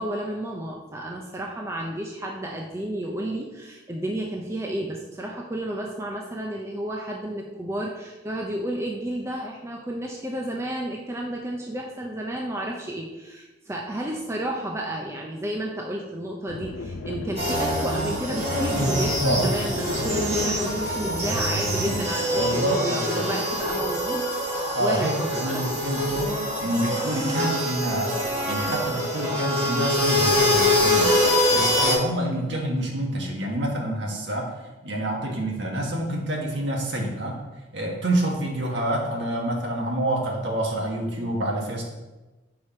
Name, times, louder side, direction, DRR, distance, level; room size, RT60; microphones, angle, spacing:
voice 1, 0.0-24.2 24.8-25.6, right 1 dB, 15° right, -1 dB, 0.4 m, -32 dB
sound 1, 16.5-21.7, left 3 dB, 75° left, 0.4 m, -36 dB
sound 2, 17.4-32.0, left 1 dB, 30° right, 1.5 m, -24 dB
voice 2, 22.3-23.3 24.7-31.1 31.5-34.4 34.8-37.3 37.7-41.8, right 1 dB, 60° right, -1 dB, 1.3 m, -27 dB
4.7 x 4.3 x 5.8 m, 1.1 s
head